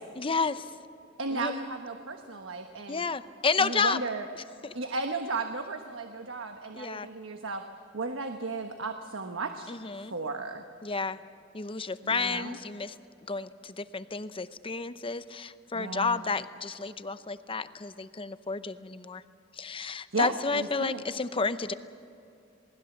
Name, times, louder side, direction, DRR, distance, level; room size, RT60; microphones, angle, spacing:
voice 1, 0.2-0.7 1.3-1.5 2.9-4.0 4.6-4.7 6.7-7.1 9.7-10.1 10.8-11.2 11.5-12.9 13.3-19.2 19.6-21.7, left 4 dB, 25° left, 12 dB, 0.7 m, -31 dB
voice 2, 1.2-3.0 3.6-4.3 4.7-7.6 7.9-9.7 10.0-10.6 12.0-12.6 15.7-16.2 20.1-21.0, right 3 dB, 85° right, 5 dB, 1.2 m, -35 dB
27.5 x 19.5 x 7.2 m, 2.7 s
head